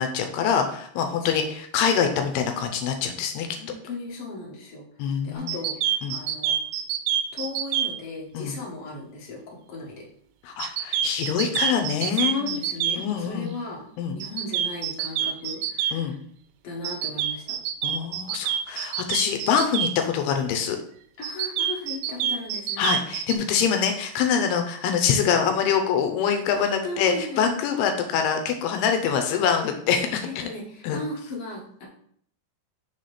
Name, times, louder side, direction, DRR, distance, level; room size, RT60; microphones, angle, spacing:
voice 1, 0.0-3.5 5.0-5.5 6.0-6.2 8.3-8.6 10.5-12.5 13.0-13.5 14.0-14.2 15.9-16.2 17.8-20.8 22.8-30.3 30.8-31.0, left 7 dB, 80° left, 6 dB, 2.6 m, -24 dB
voice 2, 3.5-6.6 7.3-10.0 12.1-13.9 14.1-16.2 16.6-17.6 21.2-22.9 26.8-27.5 30.2-31.9, left 2 dB, 55° left, -3 dB, 1.7 m, -37 dB
sound 1, 5.5-7.9 10.6-13.0 14.2-15.9 16.8-19.9 21.2-23.3, right 10 dB, 85° right, 2.2 m, -26 dB
6.4 x 4.2 x 4.9 m, 0.64 s
omnidirectional pair, 4.9 m